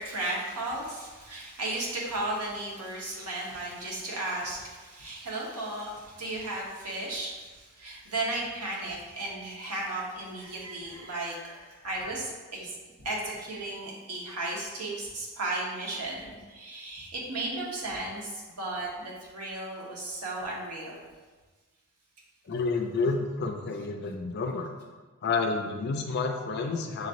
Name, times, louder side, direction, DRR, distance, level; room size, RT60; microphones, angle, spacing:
voice 1, 0.0-21.0, right 2 dB, 80° right, -4 dB, 1.2 m, -35 dB
voice 2, 22.5-24.7 25.2-27.1, left 4 dB, 50° left, 3 dB, 0.5 m, -29 dB
6.4 x 3.1 x 2.6 m, 1.3 s
head